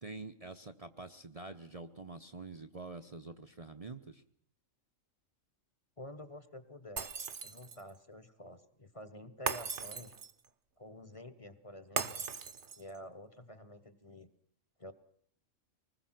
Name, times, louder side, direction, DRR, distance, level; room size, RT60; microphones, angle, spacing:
voice 1, 0.0-4.2, right 3 dB, 30° right, 7 dB, 0.9 m, -46 dB
voice 2, 6.0-7.1 7.4-10.1 10.8-12.3 12.8-14.3 14.8-14.9, left 1 dB, 25° left, 12 dB, 1.4 m, -49 dB
Shatter, 7.0-7.9 9.5-10.5 12.0-13.0, right 5 dB, 60° right, 1.4 m, -38 dB
25.0 x 20.5 x 5.9 m, 0.63 s
omnidirectional pair, 1.3 m